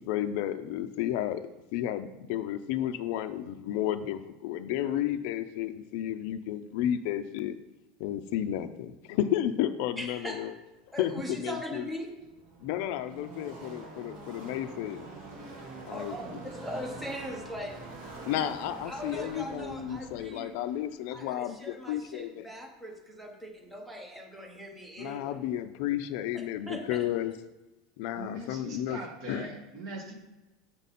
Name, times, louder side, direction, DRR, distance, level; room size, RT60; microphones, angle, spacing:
voice 1, 0.0-1.4 1.7-7.5 8.0-10.5 11.0-11.9 12.6-15.1 15.9-16.2 18.3-22.5 25.0-27.3 28.0-29.0 29.3-29.5, left 11 dB, 55° left, 10 dB, 0.4 m, -32 dB
voice 2, 10.0-10.4 10.9-12.1 15.9-17.8 18.3-18.5 18.9-20.6 21.1-25.4 26.3-27.1, equal, 5° right, 1 dB, 0.8 m, -40 dB
Car passing by / Race car auto racing, 12.0-22.3, right 3 dB, 55° right, 1.7 m, -45 dB
voice 3, 28.2-30.1, right 1 dB, 40° right, 1 dB, 1.3 m, -40 dB
7.1 x 5.3 x 4.2 m, 1.0 s
supercardioid pair, 175°, 0 cm